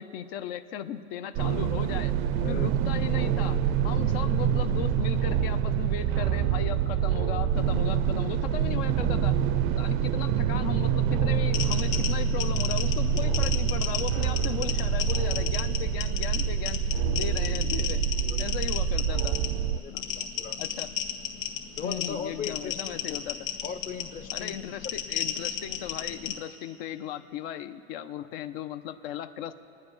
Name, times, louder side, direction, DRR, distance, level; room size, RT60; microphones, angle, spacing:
voice 1, 0.0-2.1 2.5-9.4 9.8-18.1 18.4-19.4 19.9-20.0 20.6-20.9 21.8-23.5 24.3-29.5, left 10 dB, 85° left, 9 dB, 0.8 m, -37 dB
sound 1, 1.3-19.8, right 8 dB, 45° right, 0.4 m, -26 dB
sound 2, 11.5-26.3, left 9 dB, 65° left, 1.6 m, -34 dB
voice 2, 18.2-18.7 19.7-20.6 21.8-23.0 23.6-24.7 28.2-28.3, left 6 dB, 30° left, 8 dB, 0.5 m, -39 dB
28.5 x 9.7 x 4.1 m, 2.8 s
cardioid pair, 155°, 29 cm